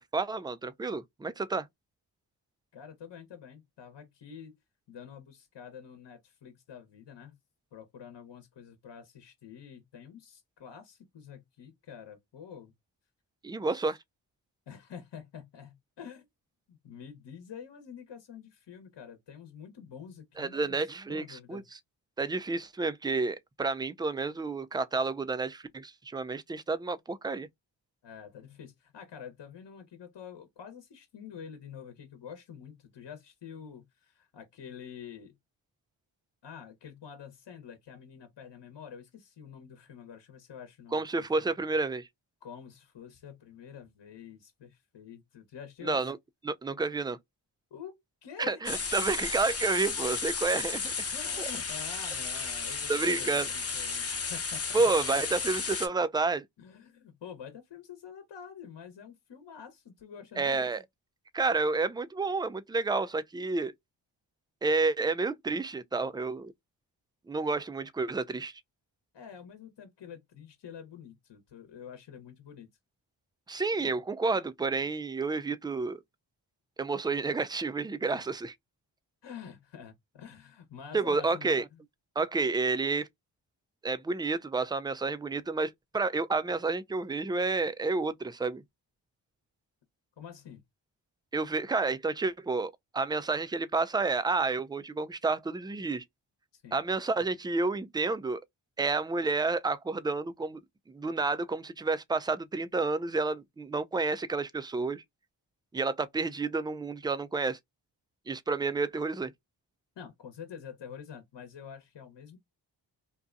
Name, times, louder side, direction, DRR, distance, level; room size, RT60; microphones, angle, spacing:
voice 1, 0.0-1.7 13.4-14.0 20.4-21.6 22.2-27.5 40.9-42.1 45.8-46.2 46.4-47.2 48.4-50.9 52.9-53.5 54.7-56.5 60.4-60.8 61.3-63.7 64.6-66.5 67.3-68.5 73.5-76.0 76.8-78.5 80.9-81.7 82.2-83.1 83.8-88.6 91.3-96.0 96.7-98.4 98.8-100.6 100.9-105.0 105.7-107.6 108.3-109.3, right 3 dB, 10° right, 0.3 m, -30 dB
voice 2, 2.7-4.6 4.9-7.4 7.7-12.7 13.7-13.8 14.7-16.3 16.7-21.7 28.0-35.4 36.4-41.2 42.4-46.0 47.7-48.6 51.1-54.9 56.6-60.7 69.1-72.7 73.8-73.9 78.2-78.4 79.2-81.8 90.2-90.6 96.5-96.8 110.0-112.4, left 7 dB, 60° left, 1.0 m, -47 dB
sound 1, 48.7-55.9, left 5 dB, 30° left, 0.9 m, -34 dB
2.6 x 2.2 x 2.5 m
supercardioid pair, 40°, 48 cm